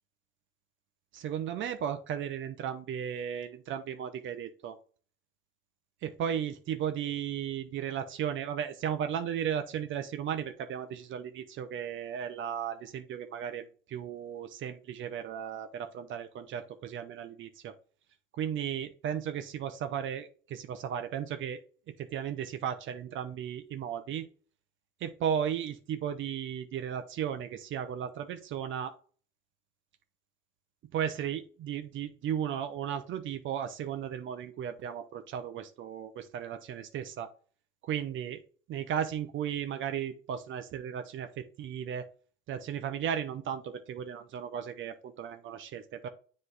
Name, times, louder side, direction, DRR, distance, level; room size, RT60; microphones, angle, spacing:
voice 1, 1.1-4.8 6.0-17.7 18.3-21.6 22.0-24.3 25.0-28.9 30.9-37.3 37.8-38.4 38.7-42.1 42.5-46.1, right 9 dB, 75° right, 8 dB, 0.7 m, -35 dB
7.7 x 3.2 x 4.0 m, 0.42 s
cardioid pair, 90°, 20 cm